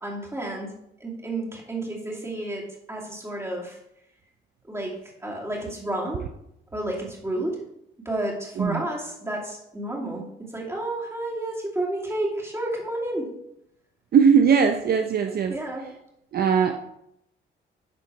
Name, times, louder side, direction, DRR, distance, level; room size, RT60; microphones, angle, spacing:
voice 1, 0.0-0.7 1.0-2.6 2.9-3.8 4.7-4.9 5.2-6.2 6.7-7.6 8.0-10.3 10.5-13.3 15.5-15.9, right 1 dB, 15° right, -2 dB, 2.6 m, -30 dB
voice 2, 14.1-15.6 16.3-16.8, right 6 dB, 50° right, 5 dB, 0.6 m, -19 dB
11.5 x 3.8 x 4.6 m, 0.80 s
cardioid pair, 90°, 20 cm